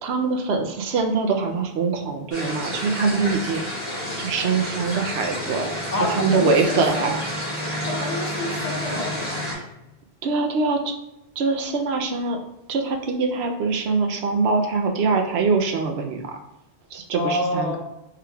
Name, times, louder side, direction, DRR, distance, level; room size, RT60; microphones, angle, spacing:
voice 1, 0.0-3.6 4.2-5.7 6.1-7.2 10.2-10.9 11.4-12.4 12.7-16.4 16.9-17.8, right 4 dB, 80° right, 4 dB, 0.8 m, -23 dB
sound 1, 2.3-9.5, equal, 65° left, 1.8 m, -30 dB
voice 2, 5.9-7.1 7.8-9.4 17.2-17.8, left 1 dB, 45° left, -1 dB, 0.7 m, -27 dB
4.8 x 3.4 x 2.3 m, 0.90 s
omnidirectional pair, 1.0 m